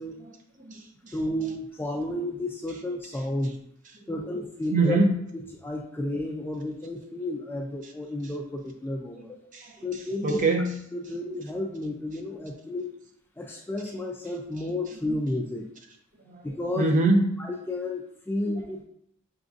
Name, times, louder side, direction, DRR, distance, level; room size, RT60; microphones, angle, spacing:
voice 1, 0.2-1.2 4.7-5.1 9.5-10.8 16.2-16.5 16.8-17.4 18.4-18.5, right 2 dB, 40° right, 2 dB, 0.6 m, -25 dB
voice 2, 1.1-3.6 4.1-5.0 5.6-9.4 9.8-10.4 10.9-12.9 13.4-15.7 16.4-16.9 17.4-18.8, left 1 dB, 10° left, 1 dB, 0.3 m, -32 dB
5.9 x 2.6 x 2.4 m, 0.73 s
head